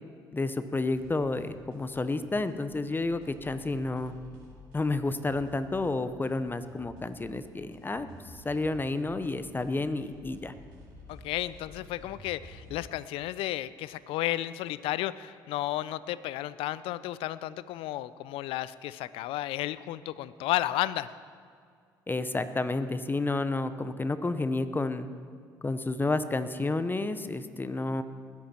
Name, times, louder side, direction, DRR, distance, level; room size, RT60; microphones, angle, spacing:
voice 1, 0.3-4.1 4.7-8.1 8.3-10.5 22.1-25.1 25.6-28.0, left 2 dB, 20° left, 12 dB, 0.9 m, -30 dB
sound 1, 0.8-12.8, left 1 dB, 90° right, 4.1 m, -52 dB
voice 2, 11.1-21.1, left 15 dB, 70° left, 17 dB, 0.5 m, -33 dB
20.0 x 10.5 x 4.4 m, 2.2 s
hypercardioid pair, 60°, 10 cm